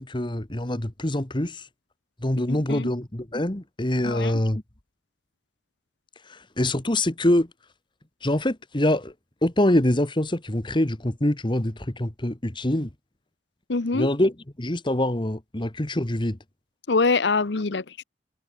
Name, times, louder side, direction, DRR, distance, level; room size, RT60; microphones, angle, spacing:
voice 1, 0.0-1.7 2.2-4.6 6.3-7.5 8.2-9.1 9.4-12.9 13.9-16.4, left 1 dB, 25° left, 1.5 m, -25 dB
voice 2, 2.5-2.9 4.0-4.3 13.7-14.1 16.9-18.0, left 4 dB, 75° left, 0.9 m, -24 dB
head